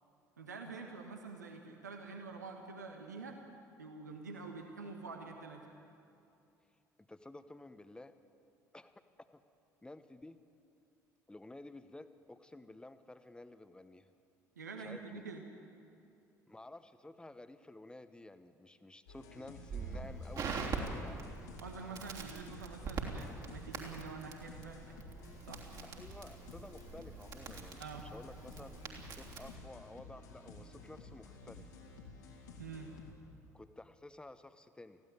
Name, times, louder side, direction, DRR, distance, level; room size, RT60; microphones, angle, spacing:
voice 1, 0.4-3.4 3.8-5.7 14.6-15.4 21.6-24.9 25.5-25.7 27.8-28.1 32.6-32.9, right 4 dB, 80° right, 3 dB, 1.4 m, -47 dB
voice 2, 7.1-8.1 8.7-9.4 9.8-10.4 11.3-14.1 14.8-15.2 16.5-21.3 25.8-28.8 29.2-31.7 33.5-35.0, left 2 dB, 10° left, 11 dB, 1.1 m, -52 dB
sound 1, 19.1-33.1, left 3 dB, 70° left, 2.7 m, -53 dB
Crackle, 19.7-29.6, right 4 dB, 45° right, 3.2 m, -44 dB
20.5 x 15.5 x 9.1 m, 2.6 s
figure-of-eight pair, 55°, 9 cm